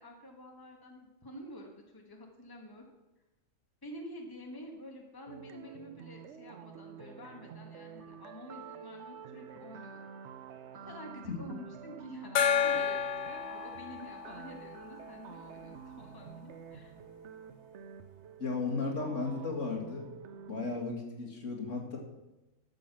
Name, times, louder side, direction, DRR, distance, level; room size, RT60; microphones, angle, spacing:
voice 1, 0.0-2.8 3.8-10.0 10.8-16.9, left 1 dB, 15° left, 2 dB, 1.5 m, -49 dB
sound 1, 5.3-20.8, right 7 dB, 65° right, 0.9 m, -49 dB
Gong, 12.4-15.6, left 7 dB, 90° left, 1.2 m, -32 dB
voice 2, 18.4-20.1 20.5-22.0, left 4 dB, 65° left, 0 dB, 2.3 m, -35 dB
12.5 x 6.9 x 6.0 m, 1.0 s
omnidirectional pair, 1.4 m